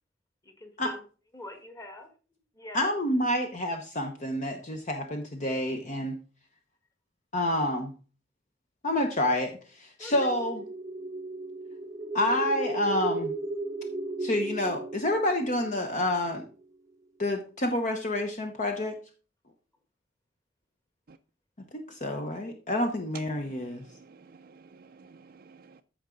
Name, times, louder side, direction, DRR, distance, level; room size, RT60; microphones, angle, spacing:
voice 1, 0.4-1.0 1.3-2.1 2.5-2.9 10.0-10.3, left 1 dB, 20° left, 1.5 m, -44 dB
voice 2, 2.7-6.2 7.3-7.9 8.8-10.6 12.1-13.3 14.2-16.4 17.2-19.0 21.7-23.9, left 1 dB, 40° left, 0.9 m, -28 dB
sound 1, 10.1-16.6, right 2 dB, 20° right, 0.7 m, -35 dB
voice 3, 23.1-25.8, right 6 dB, 50° right, 0.5 m, -51 dB
14.0 x 4.9 x 3.8 m
head